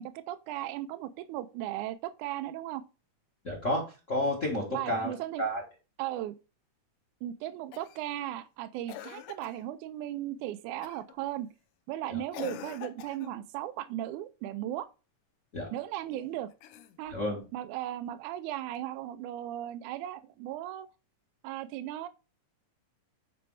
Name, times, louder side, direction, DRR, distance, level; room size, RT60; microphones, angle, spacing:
voice 1, 0.0-2.8 4.7-5.5 6.0-6.4 7.2-11.5 11.9-14.9 15.7-16.5 17.0-17.1 17.5-20.9 21.4-22.1, right 13 dB, 85° right, 2.0 m, -36 dB
voice 2, 3.4-5.6 12.1-12.2 15.5-15.7 17.1-17.4, equal, 40° left, 1.1 m, -31 dB
Cough, 7.7-8.1 8.9-9.6 10.8-11.1 12.3-13.4 16.5-17.3 18.7-18.8, left 11 dB, 90° left, 2.3 m, -44 dB
9.3 x 4.3 x 3.2 m
omnidirectional pair, 3.5 m